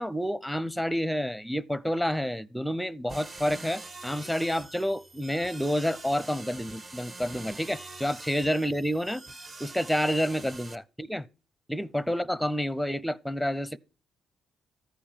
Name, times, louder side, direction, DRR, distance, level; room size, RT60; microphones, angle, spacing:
voice 1, 0.0-9.2 9.6-11.3 11.7-13.8, equal, ahead, 0.7 m, -29 dB
sound 1, 3.1-10.8, right 3 dB, 35° right, 1.3 m, -44 dB
14.0 x 4.9 x 7.4 m
cardioid pair, 90°, 0 cm